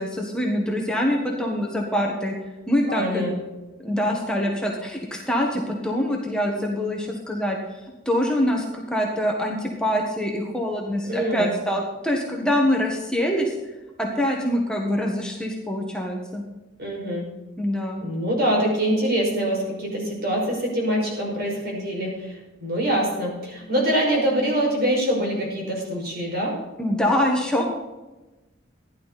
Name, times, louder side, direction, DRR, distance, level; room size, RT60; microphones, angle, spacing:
voice 1, 0.0-2.3 2.7-3.3 3.8-7.6 8.0-13.5 14.0-16.4 17.6-18.0 26.8-27.7, equal, 5° left, -1 dB, 1.4 m, -24 dB
voice 2, 2.9-3.3 11.0-11.5 16.8-17.2 18.0-26.6, right 1 dB, 55° right, -2 dB, 5.8 m, -24 dB
15.5 x 11.0 x 4.2 m, 1.1 s
head